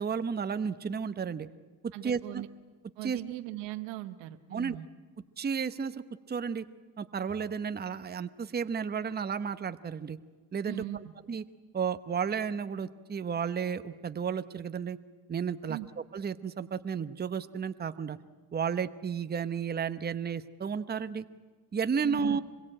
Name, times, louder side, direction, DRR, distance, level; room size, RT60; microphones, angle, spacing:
voice 1, 0.0-1.5 1.8-2.4 3.0-3.2 4.5-4.8 5.4-6.0 6.3-6.6 7.0-10.2 10.5-10.8 11.3-11.4 11.7-15.0 15.3-15.8 16.1-18.2 18.5-21.2 21.7-22.4, right 6 dB, 25° right, 12 dB, 0.9 m, -32 dB
voice 2, 1.9-2.5 3.0-4.9 10.7-11.1 15.7-15.9 22.0-22.4, right 16 dB, 90° right, 8 dB, 1.1 m, -39 dB
25.5 x 22.5 x 8.9 m, 1.4 s
cardioid pair, 100°, 42 cm